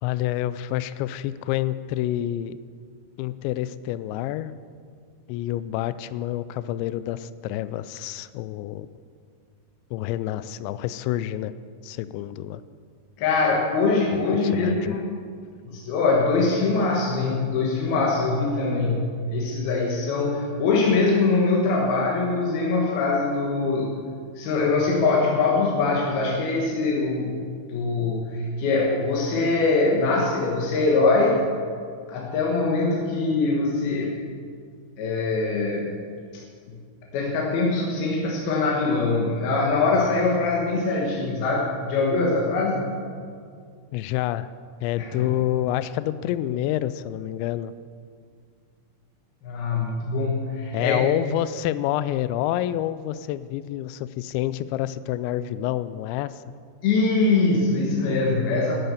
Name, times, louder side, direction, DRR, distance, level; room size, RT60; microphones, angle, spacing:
voice 1, 0.0-2.6 3.2-4.5 5.3-8.9 9.9-11.5 11.8-12.6 14.1-15.0 43.9-44.5 44.8-47.7 50.7-56.4, left 13 dB, 85° left, 15 dB, 2.6 m, -28 dB
voice 2, 13.2-15.0 15.7-23.9 24.4-27.4 27.7-31.4 32.1-34.2 35.0-36.0 36.3-36.4 36.7-36.8 37.1-42.9 45.0-45.3 49.4-51.0 56.8-58.8, left 3 dB, 65° left, -2 dB, 2.8 m, -23 dB
11.5 x 11.0 x 6.9 m, 2.2 s
omnidirectional pair, 5.5 m